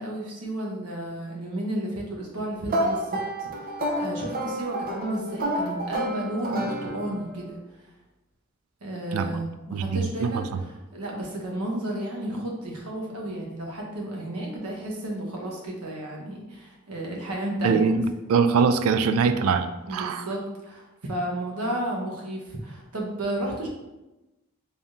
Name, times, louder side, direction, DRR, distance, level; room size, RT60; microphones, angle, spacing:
voice 1, 0.0-7.8 8.8-17.8 19.9-23.7, right 1 dB, 85° right, -1 dB, 0.9 m, -32 dB
sound 1, 2.7-7.3, right 1 dB, 40° right, 0.7 m, -29 dB
voice 2, 9.7-10.4 17.6-20.2, right 5 dB, 70° right, 9 dB, 0.3 m, -23 dB
3.5 x 2.7 x 3.6 m, 1.0 s
head